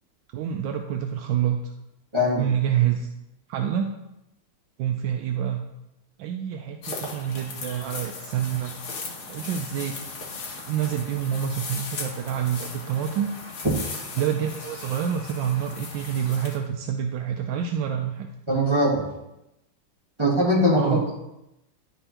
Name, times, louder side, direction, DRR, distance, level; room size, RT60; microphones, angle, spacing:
voice 1, 0.3-1.7 2.4-3.1 3.5-3.9 4.8-5.6 6.2-8.7 9.3-9.9 10.6-13.3 14.2-18.3 20.8-21.0, right 9 dB, 75° right, 4 dB, 1.1 m, -27 dB
voice 2, 2.1-2.4 18.5-19.0 20.2-21.2, equal, 15° right, -7 dB, 1.5 m, -21 dB
sound 1, 6.8-16.6, left 4 dB, 80° left, 2.1 m, -37 dB
11.0 x 4.4 x 2.9 m, 0.89 s
omnidirectional pair, 2.3 m